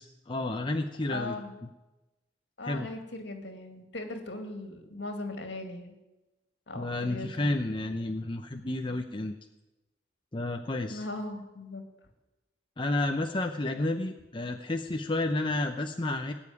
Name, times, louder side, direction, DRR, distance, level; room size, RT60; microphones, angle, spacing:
voice 1, 0.0-1.4 2.6-2.9 6.7-9.3 10.3-11.0 12.8-16.3, left 2 dB, 25° left, 4 dB, 0.7 m, -31 dB
voice 2, 1.1-1.6 2.6-6.0 6.7-7.5 10.9-11.9, left 2 dB, 65° left, 5 dB, 2.4 m, -39 dB
19.0 x 7.2 x 9.7 m, 1.0 s
head